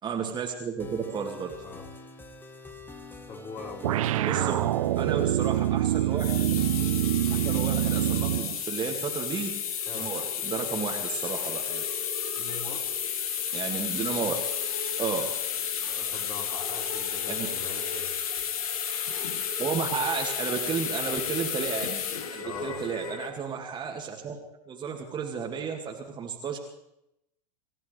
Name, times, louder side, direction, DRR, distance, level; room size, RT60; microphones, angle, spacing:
voice 1, 0.0-1.6 4.2-4.5 5.0-6.5 7.3-9.5 9.9-11.8 13.5-14.3 15.0-15.4 17.3-17.5 19.6-22.0 22.3-24.4 24.7-26.6, right 6 dB, 20° right, 2 dB, 2.2 m, -32 dB
sound 1, 0.8-8.2, left 3 dB, 10° left, 1.6 m, -45 dB
voice 2, 3.3-4.6 9.9-10.1 12.3-12.9 15.9-18.2 22.4-22.8, left 4 dB, 30° left, -1 dB, 4.5 m, -42 dB
sound 2, 3.8-8.6, right 14 dB, 60° right, 0.5 m, -25 dB
sound 3, 6.1-23.3, left 8 dB, 60° left, 1.9 m, -32 dB
27.0 x 15.5 x 3.4 m, 0.83 s
figure-of-eight pair, 95°, 20 cm